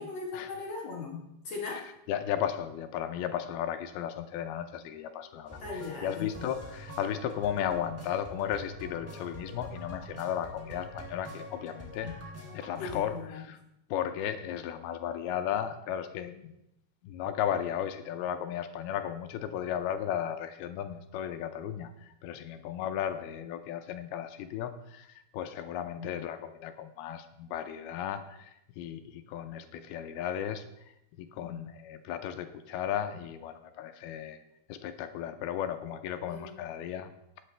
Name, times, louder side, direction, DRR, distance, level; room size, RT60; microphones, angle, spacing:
voice 1, 0.0-1.8 5.6-6.3 12.0-12.2 12.8-13.4 26.0-26.2 31.4-31.6 36.3-36.6, left 4 dB, 55° left, -2 dB, 2.2 m, -39 dB
voice 2, 2.1-12.1 12.5-13.6 13.9-16.5 17.0-30.6 31.2-34.4 34.7-37.1, left 10 dB, 80° left, 8 dB, 2.5 m, -35 dB
sound 1, 5.5-13.2, equal, 5° right, 2.0 m, -45 dB
19.0 x 8.5 x 3.3 m, 0.82 s
omnidirectional pair, 4.6 m